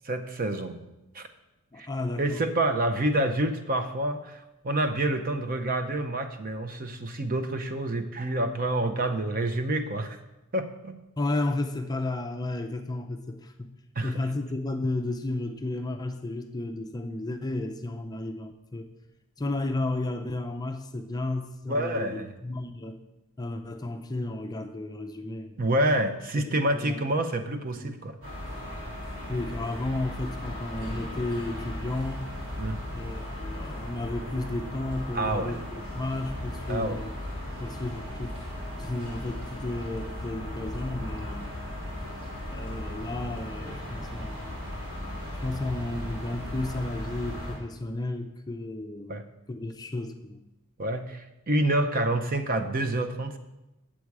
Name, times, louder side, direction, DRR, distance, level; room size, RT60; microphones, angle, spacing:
voice 1, 0.0-0.8 1.1-1.3 1.8-1.9 2.2-10.2 10.5-11.0 14.0-14.1 21.7-22.3 25.6-28.2 32.6-32.8 35.1-35.6 36.7-37.0 49.1-49.2 50.8-53.4, right 1 dB, 40° right, 8 dB, 0.6 m, -28 dB
voice 2, 1.7-2.4 11.2-13.7 14.0-18.9 19.4-23.0 23.4-25.6 26.5-27.0 27.8-28.0 29.3-32.3 32.9-37.2 37.6-38.4 38.8-41.5 42.5-44.6 45.3-50.4, left 2 dB, 15° left, 6 dB, 0.4 m, -33 dB
sound 1, 28.2-47.5, left 1 dB, 75° right, 3.2 m, -37 dB
8.4 x 7.4 x 4.7 m, 0.97 s
head